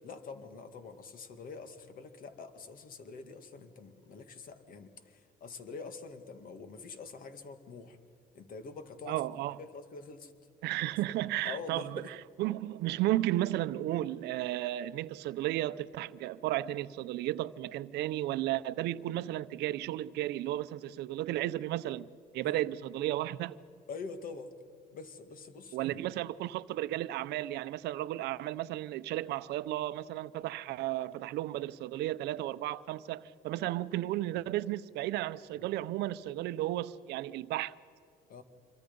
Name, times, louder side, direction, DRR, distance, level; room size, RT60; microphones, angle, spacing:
voice 1, 0.0-8.0 8.3-9.2 9.6-10.3 11.4-12.1 22.4-22.6 23.9-24.5 24.9-26.0 35.6-35.7 38.3-38.4, left 4 dB, 55° left, 2.1 m, -45 dB
voice 2, 9.1-9.6 10.6-22.1 22.3-23.6 25.7-37.7, right 15 dB, 85° right, 0.7 m, -34 dB
27.0 x 23.5 x 5.4 m
cardioid pair, 110°, 17 cm